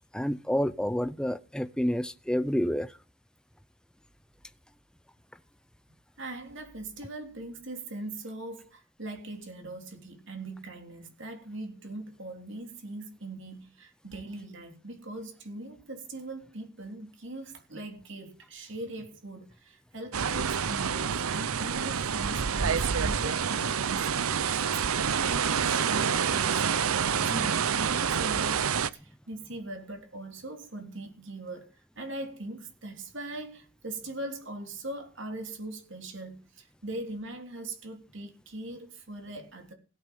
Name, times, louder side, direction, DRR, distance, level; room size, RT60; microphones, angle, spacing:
voice 1, 0.1-2.9 27.3-27.5, equal, 5° left, 0.6 m, -29 dB
voice 2, 6.2-39.7, right 2 dB, 55° right, 3.4 m, -41 dB
sound 1, 20.1-28.9, right 7 dB, 85° right, 0.7 m, -27 dB
16.5 x 9.4 x 5.5 m
head